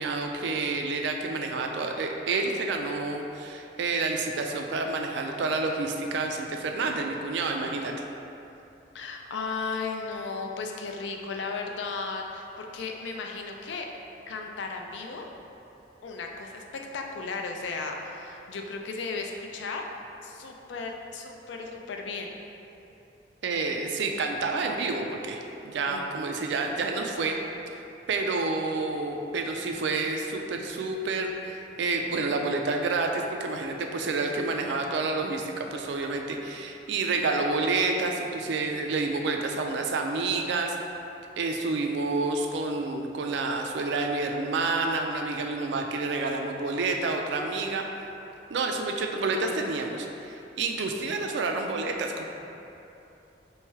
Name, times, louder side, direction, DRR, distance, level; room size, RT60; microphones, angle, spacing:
voice 1, 0.0-7.9 23.4-27.4 27.7-40.8 41.4-47.9 48.5-52.2, right 3 dB, 70° right, 3 dB, 0.4 m, -29 dB
voice 2, 8.9-13.9 14.3-15.3 16.0-16.6 16.9-19.9 20.2-22.3 25.9-26.1, left 4 dB, 80° left, 2 dB, 0.4 m, -35 dB
3.2 x 3.1 x 4.6 m, 2.9 s
head